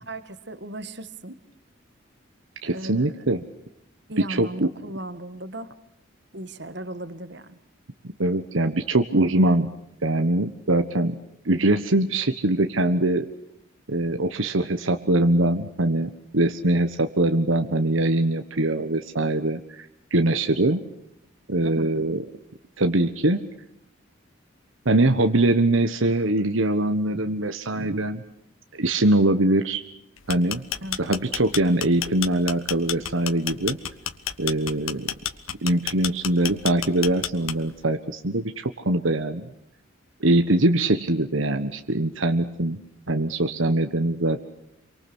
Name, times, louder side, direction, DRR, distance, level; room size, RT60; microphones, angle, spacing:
voice 1, 0.1-1.4 2.6-3.2 4.1-5.7 6.3-7.6 21.6-21.9 30.8-31.0, right 1 dB, 55° right, 11 dB, 1.8 m, -37 dB
voice 2, 2.6-3.4 4.2-4.7 8.2-9.7 10.0-11.2 11.4-13.3 13.9-20.8 21.5-22.2 22.8-23.4 24.8-28.2 28.7-29.8 30.3-30.6 31.0-33.8 34.4-35.1 35.6-39.5 40.2-42.8 43.1-44.5, right 1 dB, 75° right, 7 dB, 1.4 m, -22 dB
sound 1, 30.2-37.8, left 10 dB, 85° left, 1.3 m, -30 dB
27.5 x 24.0 x 6.2 m, 0.77 s
head